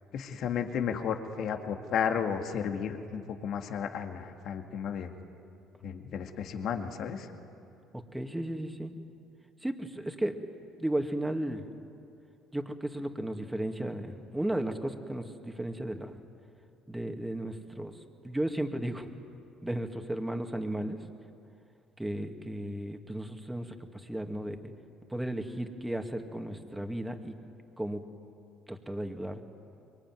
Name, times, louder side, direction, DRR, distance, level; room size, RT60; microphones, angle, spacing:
voice 1, 0.1-5.1 5.8-7.3, left 7 dB, 65° left, 5 dB, 2.1 m, -33 dB
voice 2, 7.9-8.9 9.6-10.4 10.8-11.6 12.5-16.2 16.9-17.9 18.2-19.1 19.6-21.0 22.0-24.6 25.1-27.4 27.8-28.0 28.7-29.4, right 1 dB, 10° right, 5 dB, 2.4 m, -34 dB
25.0 x 22.5 x 9.4 m, 2.7 s
supercardioid pair, 70°, 0 cm